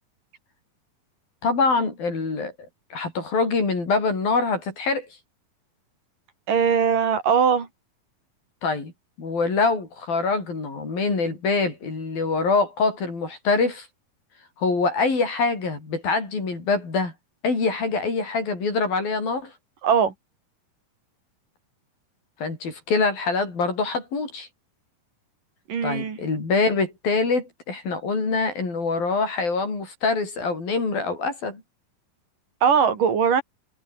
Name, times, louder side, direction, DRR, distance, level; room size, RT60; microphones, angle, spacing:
voice 1, 1.4-2.5 2.9-5.1 8.6-8.9 9.2-13.9 14.6-17.1 17.4-19.5 22.4-24.5 25.8-31.6, left 4 dB, 75° left, 9.5 m, -24 dB
voice 2, 6.5-7.7 19.8-20.1 25.7-26.2 32.6-33.4, right 7 dB, 65° right, 5.1 m, -20 dB
omnidirectional pair, 4.1 m